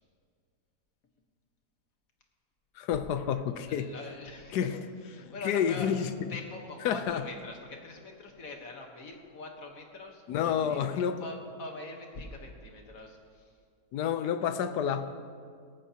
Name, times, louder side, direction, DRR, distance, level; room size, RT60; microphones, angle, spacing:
voice 1, 2.8-3.9 4.5-4.8 5.2-6.1 6.8-7.2 10.3-11.3 13.9-15.1, left 8 dB, 80° left, 10 dB, 1.3 m, -29 dB
voice 2, 3.6-6.0 6.3-10.9 11.2-13.6, left 2 dB, 60° left, 2 dB, 1.6 m, -43 dB
17.5 x 15.0 x 2.9 m, 2.1 s
omnidirectional pair, 1.7 m